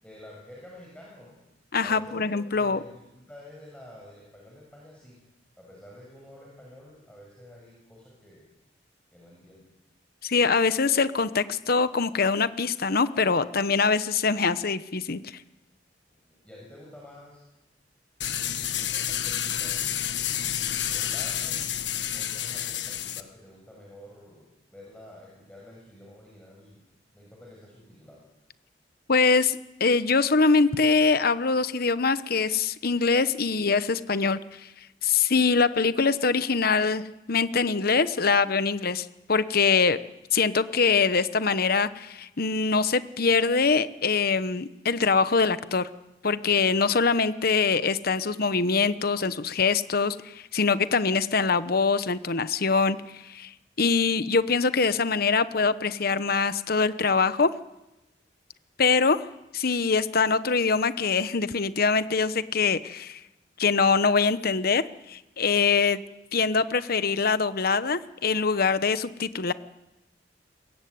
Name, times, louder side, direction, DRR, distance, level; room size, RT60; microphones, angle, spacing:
voice 1, 0.0-1.3 1.8-5.2 5.6-8.5 9.1-9.7 16.3-17.4 18.9-19.9 20.9-21.6 22.1-26.8 27.1-28.2, left 1 dB, 5° left, -3 dB, 6.7 m, -49 dB
voice 2, 1.7-2.8 10.2-15.2 29.1-34.4 35.0-40.0 40.3-45.9 46.2-50.2 50.5-53.0 53.3-53.5 53.8-57.5 58.8-59.2 59.5-63.2 63.6-64.8 65.1-66.0 66.3-69.5, left 4 dB, 55° left, 13 dB, 1.0 m, -23 dB
sound 1, 18.2-23.2, left 10 dB, 75° left, 1.5 m, -29 dB
22.5 x 22.5 x 9.5 m, 0.99 s
head